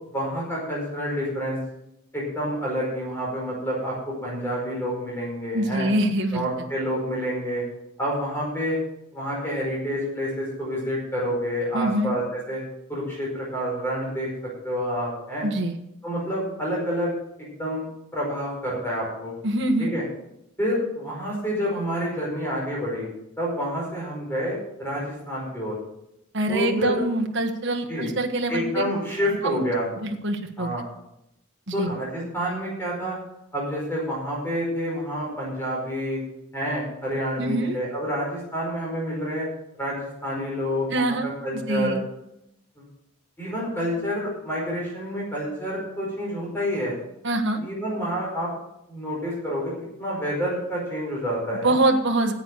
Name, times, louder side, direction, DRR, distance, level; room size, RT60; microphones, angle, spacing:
voice 1, 0.1-1.6 2.1-5.9 6.3-7.6 8.0-8.8 9.1-12.6 12.9-14.3 14.6-15.5 16.0-17.1 17.4-17.8 18.1-19.3 19.8-20.0 20.6-23.1 23.4-25.7 26.5-27.0 27.9-28.1 28.5-29.9 30.6-30.8 31.7-33.2 33.5-36.2 36.5-39.5 39.8-42.0 42.8-42.9 43.4-47.0 47.6-48.5 48.9-49.7 50.0-51.7, equal, 10° left, -4 dB, 4.8 m, -28 dB
voice 2, 5.5-6.4 11.7-12.1 15.4-15.8 19.4-19.9 26.3-28.8 29.4-29.6 30.0-30.7 31.7-31.9 37.4-37.8 40.9-41.3 41.7-42.0 47.2-47.6 51.6-52.3, right 2 dB, 55° right, 3 dB, 1.3 m, -24 dB
10.0 x 8.2 x 7.7 m, 0.83 s
head